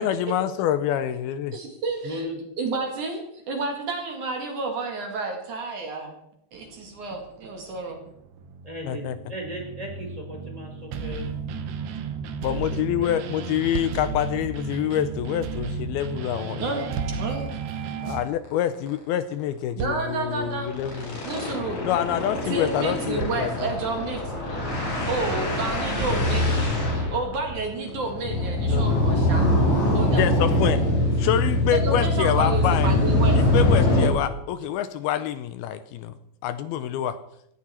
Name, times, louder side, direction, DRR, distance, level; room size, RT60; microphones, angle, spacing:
voice 1, 0.0-1.6 8.9-9.2 12.4-16.9 18.0-21.2 21.8-23.7 28.7-29.5 30.2-30.8 31.2-32.9 33.4-36.1 36.4-37.2, left 10 dB, 80° left, 12 dB, 2.5 m, -26 dB
voice 2, 1.5-2.2 2.6-3.2 3.5-6.2 6.5-8.0 16.6-16.8 17.2-17.5 19.8-21.8 22.5-24.6 25.1-26.7 27.1-29.5 29.9-30.2 31.7-33.4, right 3 dB, 55° right, 3 dB, 3.2 m, -30 dB
voice 3, 2.0-2.4 8.7-11.3 12.5-13.1 31.2-31.3, equal, 10° right, 0 dB, 4.0 m, -36 dB
sound 1, 6.5-18.2, right 5 dB, 90° right, 3.4 m, -34 dB
sound 2, 13.7-14.2 16.6-17.4 19.3-20.4 23.2-24.2 25.4-25.5 26.0-26.4 27.9-28.0 28.7-29.1 29.9-30.0, right 7 dB, 70° right, 2.0 m, -35 dB
sound 3, 17.4-17.5 17.9-18.0 18.3-18.5 18.7-18.9 20.2-34.1, left 1 dB, 45° left, 6.0 m, -23 dB
17.0 x 15.5 x 4.4 m, 0.77 s
omnidirectional pair, 4.7 m